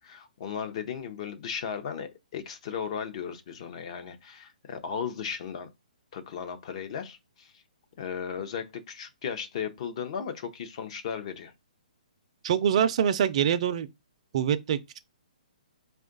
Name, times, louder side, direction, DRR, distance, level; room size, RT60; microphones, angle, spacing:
voice 1, 0.0-5.7 6.1-7.5 8.0-11.5, left 7 dB, 45° left, 0.7 m, -36 dB
voice 2, 12.4-13.9 14.3-15.0, right 8 dB, 45° right, 0.4 m, -25 dB
4.5 x 2.4 x 3.8 m
hypercardioid pair, 155°, 5 cm